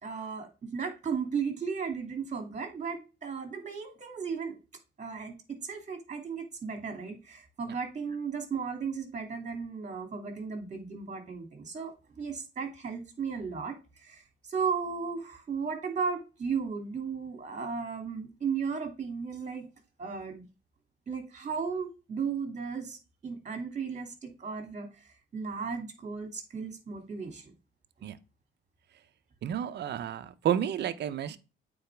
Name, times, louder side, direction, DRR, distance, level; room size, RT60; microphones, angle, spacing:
voice 1, 0.0-4.6 5.0-19.7 20.0-20.5 21.1-27.5, right 5 dB, 35° right, 2.4 m, -35 dB
voice 2, 29.4-31.4, right 10 dB, 60° right, 0.7 m, -31 dB
8.8 x 4.1 x 3.4 m
cardioid pair, 90°, 20 cm